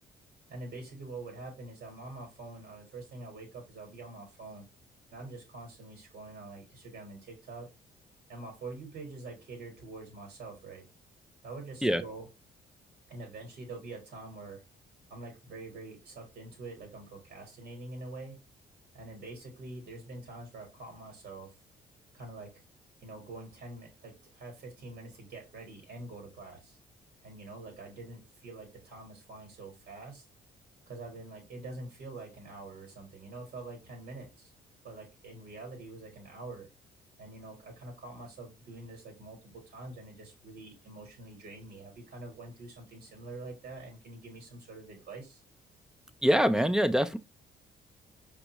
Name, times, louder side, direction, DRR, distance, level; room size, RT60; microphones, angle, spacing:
voice 1, 0.5-4.7 5.1-7.7 8.3-10.9 11.4-12.3 13.1-14.6 15.1-18.4 18.9-21.6 22.1-22.5 23.0-26.8 27.2-30.2 30.9-34.5 34.8-36.7 37.2-45.4, right 2 dB, 65° right, 1.3 m, -45 dB
voice 2, 46.2-47.2, equal, 5° right, 0.4 m, -24 dB
5.1 x 2.3 x 2.9 m
cardioid pair, 80°, 18 cm